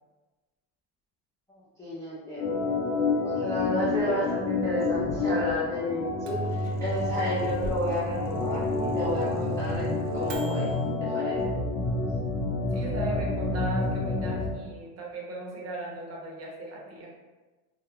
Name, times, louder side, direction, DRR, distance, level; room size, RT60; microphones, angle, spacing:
voice 1, 1.8-2.5 3.2-9.9 10.1-10.7 11.0-11.5, left 1 dB, 10° left, -9 dB, 0.3 m, -32 dB
Organ, 2.4-14.5, left 3 dB, 75° left, 0.7 m, -29 dB
Microwave oven, 6.0-10.8, right 2 dB, 85° right, 0.5 m, -34 dB
voice 2, 12.7-17.1, right 2 dB, 35° right, -2 dB, 0.6 m, -37 dB
2.3 x 2.0 x 2.9 m, 1.2 s
cardioid pair, 130°, 43 cm